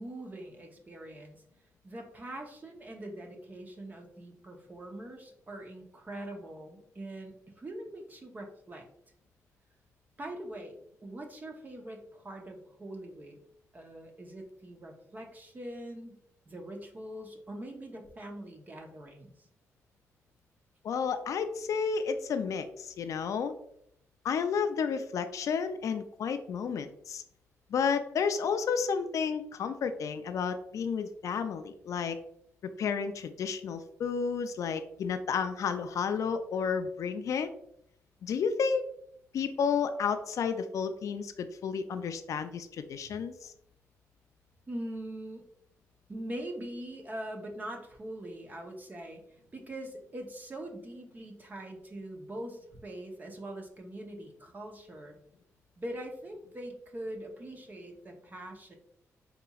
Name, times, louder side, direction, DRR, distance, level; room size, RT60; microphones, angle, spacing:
voice 1, 0.0-1.4 1.8-8.9 10.2-10.8 11.0-13.4 13.7-16.2 16.5-19.5 44.7-45.4 46.1-49.2 49.5-55.2 55.8-58.8, right 1 dB, 30° right, 2 dB, 0.7 m, -42 dB
voice 2, 20.8-23.5 24.2-27.2 27.7-32.2 32.6-37.5 38.2-38.8 39.3-43.5, left 6 dB, 70° left, 9 dB, 0.3 m, -31 dB
4.1 x 2.8 x 2.3 m, 0.72 s
cardioid pair, 95°, 6 cm